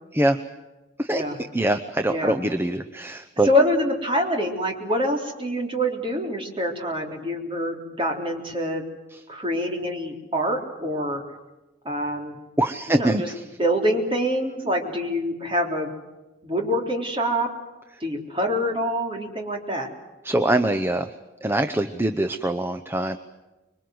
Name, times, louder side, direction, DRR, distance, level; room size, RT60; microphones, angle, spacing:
voice 1, 1.5-3.5 9.1-9.2 12.6-13.4 20.2-21.1 21.4-23.2, right 1 dB, 10° right, 7 dB, 0.8 m, -23 dB
voice 2, 3.4-8.8 9.3-11.2 11.9-12.4 12.9-13.3 13.6-15.9 16.4-17.5 18.0-19.9, equal, 25° right, 1 dB, 3.6 m, -25 dB
26.0 x 23.0 x 7.9 m, 1.1 s
head